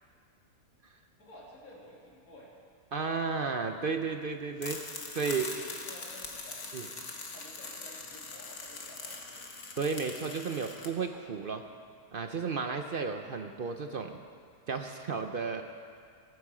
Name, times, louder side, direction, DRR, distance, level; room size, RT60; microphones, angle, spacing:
voice 1, 1.2-2.5 5.5-9.4, left 1 dB, 75° left, -5 dB, 3.5 m, -53 dB
voice 2, 2.9-4.8 5.1-5.5 6.7-6.9 9.8-11.7 12.1-14.2 14.7-15.6, right 5 dB, 55° right, 6 dB, 0.6 m, -33 dB
sound 1, 4.6-10.9, left 3 dB, 55° left, 1.6 m, -42 dB
22.5 x 9.6 x 4.9 m, 2.2 s
omnidirectional pair, 1.6 m